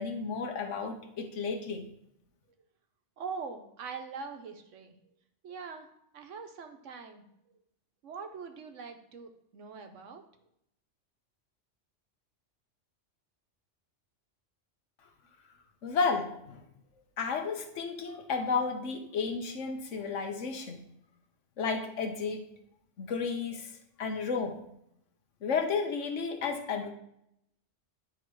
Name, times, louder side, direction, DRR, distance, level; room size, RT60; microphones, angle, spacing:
voice 1, 0.0-1.9 15.8-16.6 17.2-20.8 21.6-22.4 23.0-23.7 24.0-24.6 25.4-26.9, left 5 dB, 80° left, 5 dB, 1.3 m, -32 dB
voice 2, 3.2-4.9 5.4-5.9 6.1-7.2 8.0-10.2, right 5 dB, 85° right, 6 dB, 1.2 m, -42 dB
10.0 x 3.6 x 4.6 m, 0.77 s
omnidirectional pair, 1.2 m